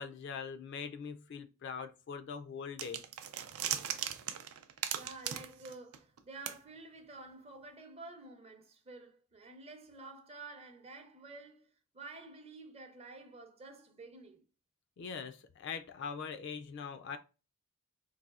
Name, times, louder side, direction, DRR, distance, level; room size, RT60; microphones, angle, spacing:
voice 1, 0.0-3.0 15.0-17.2, left 6 dB, 55° left, 0.3 m, -42 dB
sound 1, 2.8-6.2 6.5-6.6, right 10 dB, 80° right, 0.4 m, -38 dB
voice 2, 4.9-14.4, right 3 dB, 30° right, 0.5 m, -50 dB
4.0 x 2.6 x 2.3 m
head